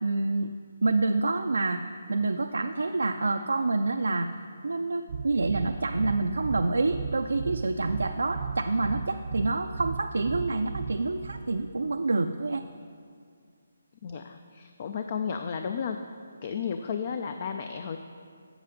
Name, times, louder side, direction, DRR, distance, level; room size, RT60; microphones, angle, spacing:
voice 1, 0.0-0.5 0.8-1.8 2.1-4.3 4.6-12.6, right 3 dB, 85° right, 6 dB, 0.4 m, -27 dB
sound 1, 5.1-11.4, right 5 dB, 45° right, 0.6 m, -35 dB
voice 2, 14.0-16.0 16.4-18.0, left 6 dB, 40° left, 7 dB, 0.4 m, -33 dB
8.0 x 7.5 x 5.1 m, 2.2 s
hypercardioid pair, 160°, 0 cm